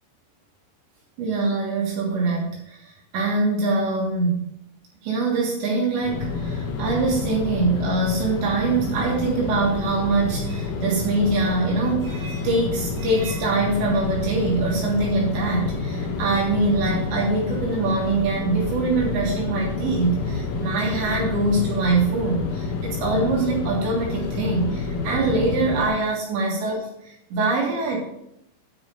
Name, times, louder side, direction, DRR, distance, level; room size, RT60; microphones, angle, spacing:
voice 1, 1.2-4.5 5.0-28.0, right 3 dB, 65° right, -3 dB, 3.5 m, -23 dB
sound 1, 6.0-25.9, left 4 dB, 90° left, 4.0 m, -29 dB
9.9 x 4.9 x 5.6 m, 0.77 s
omnidirectional pair, 6.0 m